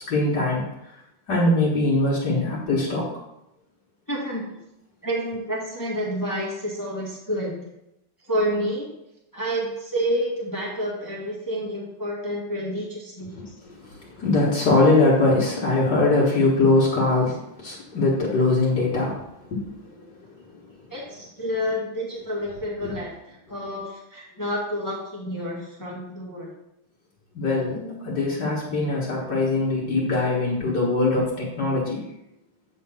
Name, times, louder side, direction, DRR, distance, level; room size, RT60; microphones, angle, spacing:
voice 1, 0.1-0.6 1.3-3.1 13.3-19.2 19.5-20.0 20.5-20.7 22.8-22.9 27.3-32.0, left 2 dB, 55° left, -5 dB, 1.9 m, -22 dB
voice 2, 4.1-4.4 5.0-7.7 8.2-8.9 9.3-13.3 20.9-26.5, equal, 10° left, -4 dB, 1.2 m, -29 dB
8.5 x 3.6 x 5.6 m, 0.85 s
omnidirectional pair, 2.4 m